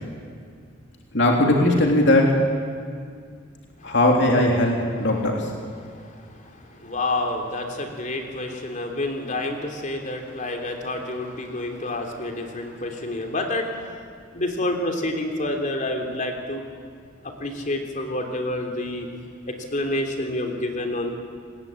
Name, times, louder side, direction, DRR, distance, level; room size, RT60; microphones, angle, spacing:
voice 1, 1.1-2.4 3.8-5.5, left 1 dB, 60° left, 0 dB, 3.2 m, -19 dB
voice 2, 6.5-13.9 14.3-16.6 17.2-19.1 19.5-21.2, left 1 dB, 40° left, 3 dB, 3.3 m, -28 dB
27.5 x 20.5 x 8.9 m, 2.1 s
head